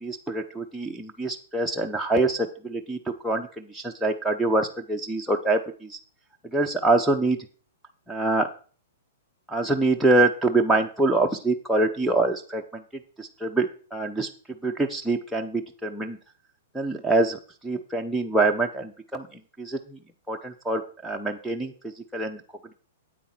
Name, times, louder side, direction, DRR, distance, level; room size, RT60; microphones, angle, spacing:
voice 1, 0.0-3.0 3.2-6.0 6.5-7.4 8.1-8.5 9.5-12.8 13.2-14.3 14.6-16.2 16.7-19.3 19.6-20.0 20.3-22.4, right 2 dB, ahead, 0 dB, 0.8 m, -25 dB
8.8 x 8.5 x 4.4 m, 0.41 s
hypercardioid pair, 115°, 0 cm